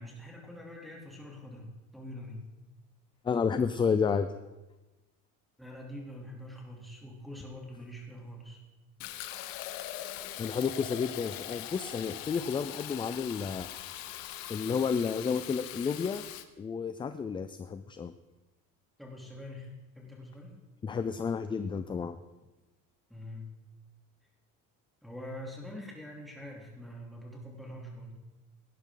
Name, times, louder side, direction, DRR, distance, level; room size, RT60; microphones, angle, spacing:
voice 1, 0.0-2.4 5.6-8.6 19.0-20.6 23.1-23.4 25.0-28.2, left 1 dB, ahead, -3 dB, 2.9 m, -44 dB
voice 2, 3.2-4.3 10.4-13.7 14.5-16.3 16.6-18.1 20.8-22.2, left 6 dB, 15° left, 11 dB, 0.3 m, -31 dB
Fill (with liquid), 9.0-16.4, left 13 dB, 85° left, 1.0 m, -41 dB
17.5 x 11.0 x 3.8 m, 1.1 s
cardioid pair, 145°, 33 cm